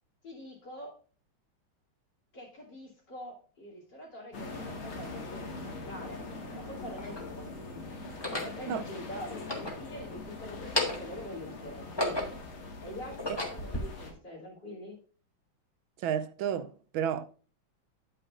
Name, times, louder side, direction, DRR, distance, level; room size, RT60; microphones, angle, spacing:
voice 1, 0.2-0.9 2.3-6.2 6.5-7.9 8.3-12.3 12.8-15.0, left 1 dB, 55° left, 3.6 m, -44 dB
sound 1, 4.3-14.1, left 3 dB, 85° left, 2.7 m, -42 dB
sound 2, 5.6-5.7 6.5-7.3 8.1-8.6 9.3-10.3 10.6-11.2 11.7-12.5 13.0-13.8, left 1 dB, 15° left, 1.3 m, -34 dB
voice 2, 16.0-17.3, right 9 dB, 80° right, 1.4 m, -31 dB
10.0 x 8.8 x 2.5 m
omnidirectional pair, 2.2 m